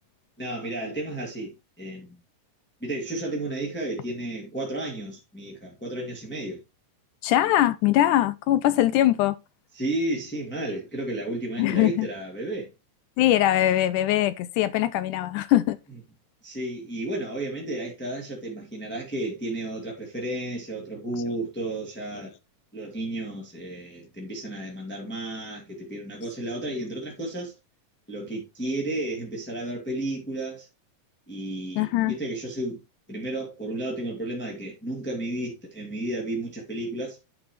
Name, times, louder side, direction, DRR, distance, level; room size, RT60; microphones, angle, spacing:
voice 1, 0.4-2.2 2.8-6.6 9.7-12.7 16.4-22.3 22.7-27.5 28.1-30.7 31.3-32.8 33.1-37.2, right 1 dB, 5° left, 1.8 m, -32 dB
voice 2, 7.2-9.4 11.6-12.1 13.2-15.8 31.8-32.2, left 13 dB, 80° left, 2.0 m, -22 dB
10.5 x 6.1 x 3.1 m
omnidirectional pair, 3.9 m